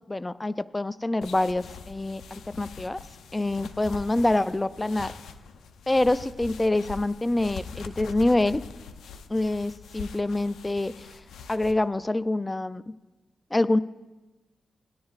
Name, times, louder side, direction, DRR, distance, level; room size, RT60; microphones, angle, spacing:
voice 1, 0.1-3.0 3.3-5.1 5.9-8.6 9.3-11.2 11.5-12.9 13.5-13.8, left 2 dB, 20° left, 15 dB, 0.3 m, -26 dB
sound 1, 1.2-11.7, left 6 dB, 90° left, 0.5 m, -43 dB
16.5 x 10.5 x 2.4 m, 1.1 s
cardioid pair, 65°, 0 cm